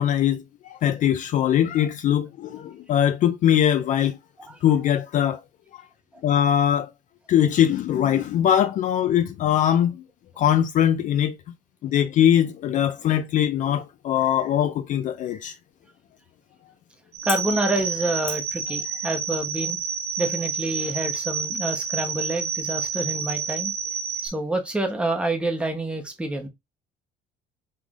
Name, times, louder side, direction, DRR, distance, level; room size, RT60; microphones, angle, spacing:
voice 1, 0.0-4.2 4.6-5.4 6.2-6.9 7.3-10.0 10.4-11.3 11.8-15.5, left 10 dB, 45° left, 0.4 m, -21 dB
sound 1, 17.1-24.3, right 6 dB, 65° right, 1.2 m, -29 dB
voice 2, 17.2-19.8 20.2-23.7 24.2-26.5, right 2 dB, 5° right, 0.8 m, -27 dB
5.5 x 3.1 x 2.4 m
cardioid pair, 160°, 18 cm